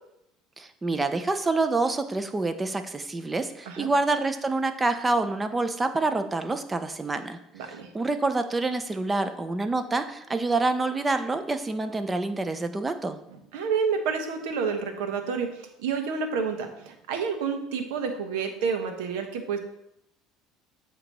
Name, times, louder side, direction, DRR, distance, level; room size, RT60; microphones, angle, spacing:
voice 1, 0.6-13.2, right 3 dB, 20° right, 9 dB, 0.7 m, -27 dB
voice 2, 7.5-7.9 13.5-19.6, right 5 dB, 80° right, 6 dB, 1.1 m, -29 dB
8.2 x 3.0 x 6.2 m, 0.81 s
supercardioid pair, 105°, 0 cm